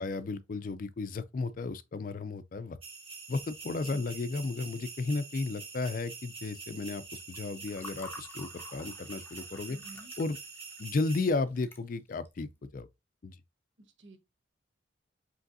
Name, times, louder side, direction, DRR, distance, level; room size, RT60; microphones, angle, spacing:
voice 1, 0.0-2.8 3.3-9.8 10.2-10.4 10.8-12.9 13.2-13.4, left 3 dB, 45° left, 0.4 m, -34 dB
sound 1, 2.8-11.3, right 4 dB, 30° right, 1.2 m, -46 dB
Water / Fill (with liquid), 7.2-12.3, left 2 dB, 10° left, 0.7 m, -50 dB
voice 2, 9.7-10.1 13.8-14.2, right 2 dB, 75° right, 0.9 m, -52 dB
5.2 x 3.1 x 2.6 m
head